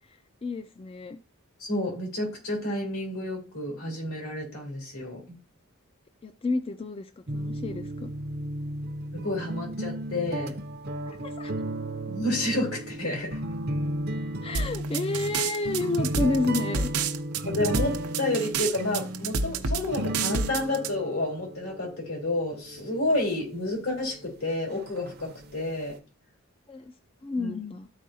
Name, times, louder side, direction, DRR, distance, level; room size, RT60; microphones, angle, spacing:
voice 1, 0.1-1.2 6.2-8.1 11.1-11.5 14.4-16.9 26.7-26.9 27.2-27.9, left 3 dB, 25° left, 9 dB, 0.3 m, -30 dB
voice 2, 1.6-5.2 9.1-10.5 12.1-13.4 17.4-26.0 27.4-27.5, left 1 dB, 80° left, -2 dB, 3.5 m, -30 dB
sound 1, 7.3-26.0, right 1 dB, 45° right, 0.6 m, -35 dB
sound 2, 14.5-20.9, right 4 dB, 90° right, 0.7 m, -29 dB
13.5 x 4.6 x 2.7 m, 0.33 s
head